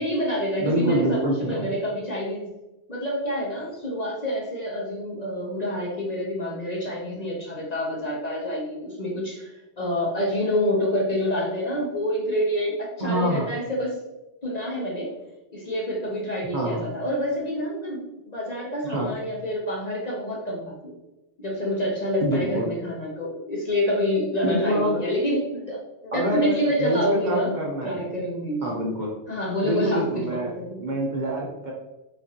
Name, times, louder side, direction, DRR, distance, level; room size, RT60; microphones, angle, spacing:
voice 1, 0.0-2.4 2.9-13.9 14.4-15.1 15.5-20.9 21.4-25.8 26.0-27.5 27.8-28.7 29.3-30.9, equal, 40° left, -3 dB, 0.8 m, -27 dB
voice 2, 0.6-1.7 13.0-13.5 16.5-16.8 18.9-19.1 22.2-22.7 24.4-25.0 26.1-28.0 28.6-29.1 29.6-30.5 30.8-31.7, right 1 dB, 45° right, -2 dB, 0.8 m, -26 dB
4.9 x 2.6 x 2.8 m, 0.99 s
omnidirectional pair, 1.2 m